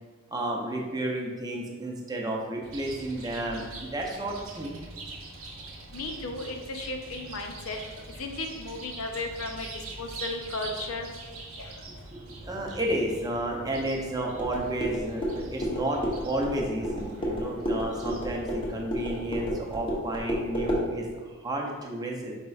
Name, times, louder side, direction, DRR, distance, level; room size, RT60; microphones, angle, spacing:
voice 1, 0.3-4.7 12.1-22.3, right 1 dB, 20° right, 0 dB, 0.6 m, -32 dB
Chirp tweet, 2.6-19.8, right 2 dB, 70° right, 0.8 m, -44 dB
voice 2, 5.9-7.8 8.2-9.7 10.0-11.1 11.6-11.7, left 2 dB, 80° left, 3 dB, 0.6 m, -35 dB
sound 1, 14.4-20.9, equal, 25° left, 0.8 m, -31 dB
5.3 x 4.2 x 2.4 m, 1.4 s
head